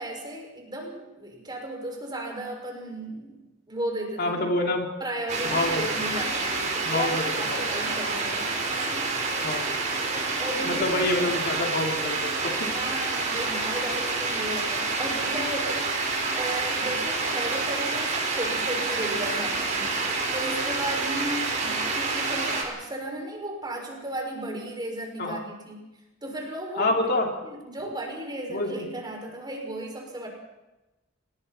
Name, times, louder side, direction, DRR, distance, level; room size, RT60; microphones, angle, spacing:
voice 1, 0.0-3.4 3.7-4.6 5.0-7.1 7.4-9.1 10.4-11.3 12.7-25.9 26.2-26.9 27.4-30.3, right 1 dB, 20° right, 1 dB, 6.1 m, -35 dB
voice 2, 4.2-4.9 5.4-6.0 6.8-7.2 7.5-7.7 9.4-9.7 10.3-12.7 25.2-25.4 26.7-27.3 28.5-28.9, left 2 dB, 55° left, 1 dB, 2.9 m, -27 dB
sound 1, 5.3-22.6, right 3 dB, 40° right, 5.2 m, -28 dB
29.5 x 20.0 x 4.5 m, 1.0 s
head